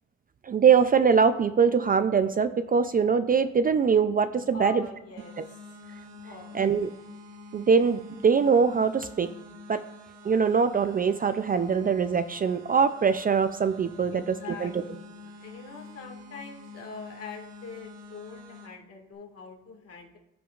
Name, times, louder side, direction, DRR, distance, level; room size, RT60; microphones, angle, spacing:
voice 1, 0.4-4.8 6.5-6.9 7.5-9.3 9.7-9.8 10.2-14.7, right 6 dB, 30° right, 11 dB, 0.4 m, -23 dB
voice 2, 4.5-5.8 6.2-6.8 14.1-20.2, left 5 dB, 50° left, 1 dB, 1.9 m, -44 dB
sound 1, 5.2-18.7, left 2 dB, 55° right, 2.1 m, -48 dB
14.5 x 6.0 x 2.4 m, 0.87 s
cardioid pair, 95°, 30 cm